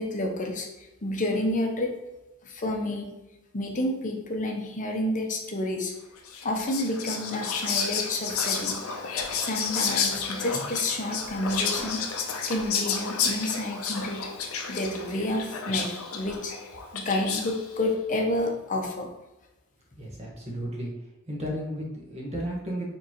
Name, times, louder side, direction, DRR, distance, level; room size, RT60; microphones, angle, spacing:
voice 1, 0.0-1.9 2.4-3.1 3.5-5.9 6.4-8.8 9.4-12.0 12.5-14.2 14.7-16.5 16.9-19.1, left 1 dB, 35° left, 2 dB, 0.7 m, -29 dB
Whispering, 6.3-17.7, left 6 dB, 70° left, 0.6 m, -31 dB
voice 2, 20.0-20.9 21.3-22.9, equal, 30° right, -2 dB, 1.2 m, -33 dB
4.8 x 3.7 x 2.9 m, 1.0 s
head